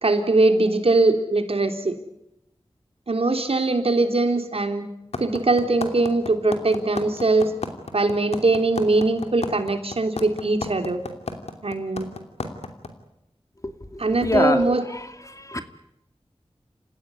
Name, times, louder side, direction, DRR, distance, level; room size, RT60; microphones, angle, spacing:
voice 1, 0.0-2.0 3.1-4.9 5.2-7.5 7.9-11.0 11.6-12.1 14.0-14.8, right 2 dB, 70° right, 6 dB, 3.3 m, -21 dB
sound 1, 5.1-12.9, left 3 dB, 90° left, 2.9 m, -31 dB
voice 2, 13.6-14.6 14.9-15.6, left 1 dB, 30° left, 8 dB, 2.4 m, -26 dB
29.0 x 16.0 x 9.6 m, 0.85 s
wide cardioid pair, 50°, 11 cm